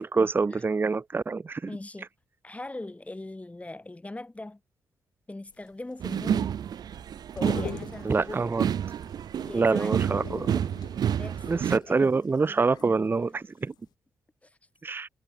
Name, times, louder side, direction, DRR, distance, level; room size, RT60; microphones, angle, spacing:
voice 1, 0.0-1.6 8.1-8.6 9.5-10.6 11.5-13.7 14.8-15.1, right 4 dB, 30° right, 0.6 m, -26 dB
voice 2, 1.7-2.1 2.4-4.6 5.3-6.5 7.3-8.4 9.4-10.1 11.1-12.2 13.2-13.4 14.4-14.6, left 2 dB, 20° left, 4.8 m, -41 dB
sound 1, 5.5-13.4 13.7-13.8, left 10 dB, 75° left, 2.2 m, -45 dB
sound 2, 6.0-11.8, right 9 dB, 70° right, 2.2 m, -30 dB
supercardioid pair, 50°, 7 cm